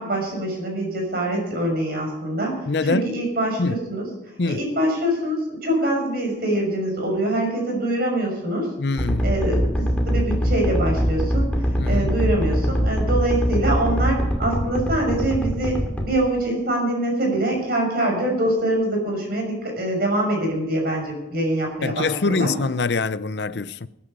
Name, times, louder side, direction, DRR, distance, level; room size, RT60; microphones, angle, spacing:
voice 1, 0.0-4.1 4.4-8.7 9.2-22.5, right 1 dB, 55° right, 5.9 m, -24 dB
voice 2, 2.7-3.1 3.6-3.8 4.4-4.6 8.8-9.3 11.8-12.1 21.8-23.9, left 3 dB, 65° left, 0.6 m, -24 dB
sound 1, 9.0-16.1, equal, 10° left, 2.4 m, -22 dB
21.0 x 9.9 x 5.5 m
head